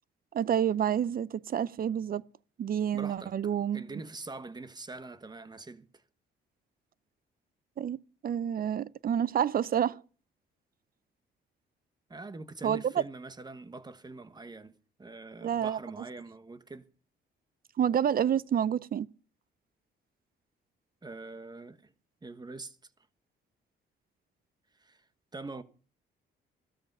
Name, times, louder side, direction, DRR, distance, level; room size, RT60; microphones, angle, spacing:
voice 1, 0.3-2.2 2.6-3.8 7.8-8.0 8.2-10.0 12.6-12.9 15.4-15.8 17.8-19.1, right 9 dB, 45° right, 0.6 m, -28 dB
voice 2, 2.9-6.0 12.1-16.9 21.0-21.9 22.2-22.9 24.8-25.0 25.3-25.6, right 3 dB, 20° right, 1.3 m, -44 dB
15.0 x 13.0 x 5.4 m
cardioid pair, 90°, 20 cm